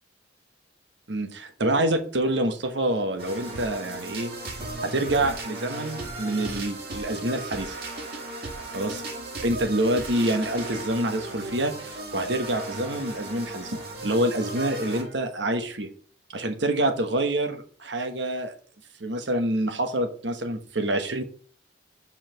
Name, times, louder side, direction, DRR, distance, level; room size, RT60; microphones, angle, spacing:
voice 1, 1.1-7.8 8.7-9.0 9.4-13.8 14.0-15.9 16.3-18.5 19.0-21.2, right 1 dB, 75° right, 6 dB, 1.3 m, -27 dB
sound 1, 3.2-15.2, right 2 dB, 55° right, 2.4 m, -36 dB
5.8 x 4.7 x 5.6 m, 0.43 s
head